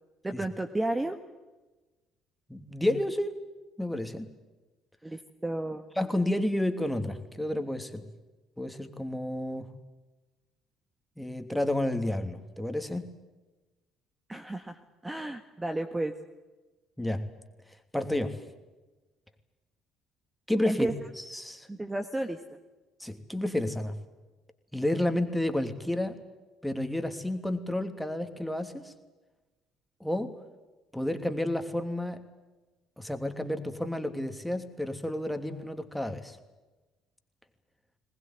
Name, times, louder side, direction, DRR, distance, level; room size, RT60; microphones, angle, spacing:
voice 1, 0.2-1.2 5.0-5.9 14.3-16.2 20.7-20.9 21.7-22.4, right 1 dB, 15° right, 7 dB, 1.7 m, -32 dB
voice 2, 2.5-3.3 3.8-4.3 6.0-8.0 8.6-9.7 11.2-13.1 17.0-17.2 17.9-18.4 20.5-20.9 21.2-21.7 23.0-23.9 24.7-26.2 26.6-28.9 30.0-30.3 30.9-32.2 33.0-36.4, left 1 dB, 5° left, 6 dB, 3.0 m, -31 dB
22.0 x 20.0 x 9.4 m, 1.2 s
hypercardioid pair, 55°, 0 cm